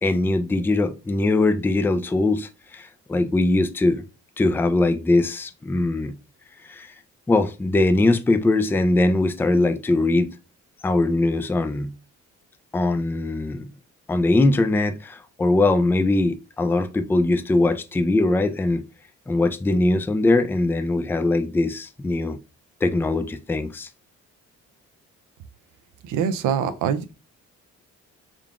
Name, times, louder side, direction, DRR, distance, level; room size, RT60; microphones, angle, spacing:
voice 1, 0.0-4.0 4.4-6.1 6.7-6.9 7.3-10.3 10.8-11.9 12.7-13.6 14.1-18.8 19.3-22.4 22.8-23.9 26.7-26.8, left 2 dB, 5° left, 0.3 m, -21 dB
voice 2, 26.0-27.1, right 8 dB, 85° right, 0.5 m, -24 dB
3.7 x 3.5 x 2.3 m
cardioid pair, 90°, 30 cm